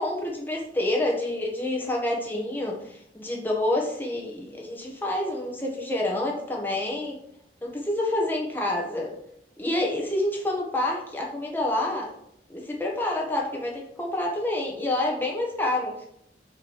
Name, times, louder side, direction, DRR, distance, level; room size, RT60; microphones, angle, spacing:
voice 1, 0.0-7.2 7.6-9.1 9.6-12.1 12.5-16.1, left 1 dB, 10° left, -2 dB, 1.1 m, -28 dB
5.7 x 3.1 x 5.6 m, 0.75 s
head